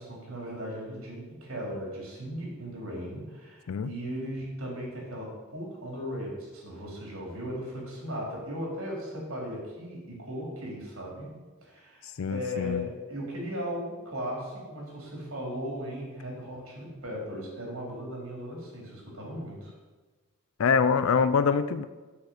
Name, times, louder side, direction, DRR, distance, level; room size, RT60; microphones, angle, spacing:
voice 1, 0.0-11.3 11.6-19.7, equal, 75° right, -2 dB, 3.9 m, -37 dB
voice 2, 12.2-12.8 20.6-21.8, left 5 dB, 70° left, 13 dB, 0.4 m, -24 dB
7.4 x 6.7 x 7.9 m, 1.3 s
head